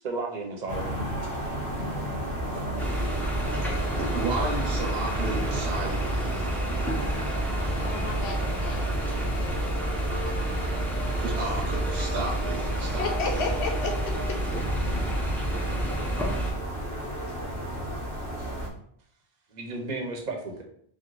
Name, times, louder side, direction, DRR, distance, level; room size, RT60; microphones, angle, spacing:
voice 1, 0.0-0.9 19.5-20.6, right 3 dB, 50° right, 1 dB, 0.7 m, -33 dB
sound 1, 0.7-18.7, equal, 60° left, 0.9 m, -33 dB
sound 2, 2.8-16.5, right 1 dB, ahead, 0.4 m, -30 dB
sound 3, 3.3-14.3, right 2 dB, 20° right, 0.8 m, -41 dB
voice 2, 3.6-6.6 11.2-13.4, right 3 dB, 90° right, 0 dB, 0.9 m, -34 dB
voice 3, 7.8-9.9 10.1-10.9 13.0-13.9 14.3-14.6 15.7-15.8, left 4 dB, 90° left, 2 dB, 0.9 m, -35 dB
3.0 x 2.2 x 3.8 m, 0.65 s
omnidirectional pair, 1.1 m